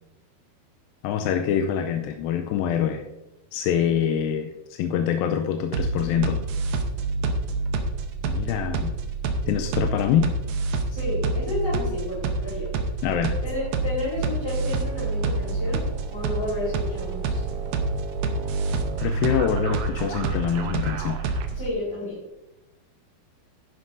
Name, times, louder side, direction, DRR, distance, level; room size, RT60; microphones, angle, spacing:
voice 1, 1.0-3.0 3.5-6.4 8.2-8.9 9.5-10.4 13.0-13.4 19.0-21.2, left 9 dB, 80° left, 5 dB, 2.3 m, -25 dB
sound 1, 5.7-21.7, right 3 dB, 75° right, 2.4 m, -27 dB
voice 2, 10.9-12.7 13.4-15.8 16.1-17.4 21.5-22.2, left 2 dB, 5° left, -8 dB, 3.6 m, -31 dB
11.0 x 11.0 x 2.6 m, 0.99 s
omnidirectional pair, 4.3 m